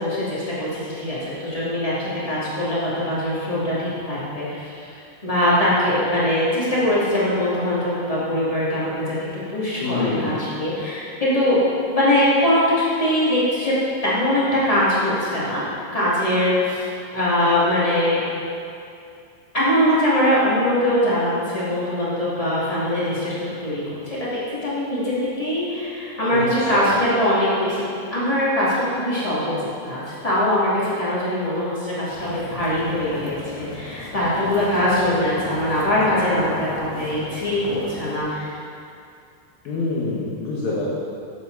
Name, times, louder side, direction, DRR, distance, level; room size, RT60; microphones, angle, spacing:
voice 1, 0.0-9.1 9.5-11.6 11.9-13.7 14.0-15.6 15.9-16.9 17.1-18.2 19.5-27.8 28.1-38.5, left 1 dB, 20° left, -9 dB, 1.0 m, -22 dB
voice 2, 9.8-10.5 26.3-27.0 39.7-40.9, left 3 dB, 65° left, -8 dB, 2.8 m, -26 dB
sound 1, 32.1-38.2, left 3 dB, 85° left, 3.7 m, -37 dB
14.0 x 7.6 x 4.0 m, 2.5 s
omnidirectional pair, 5.1 m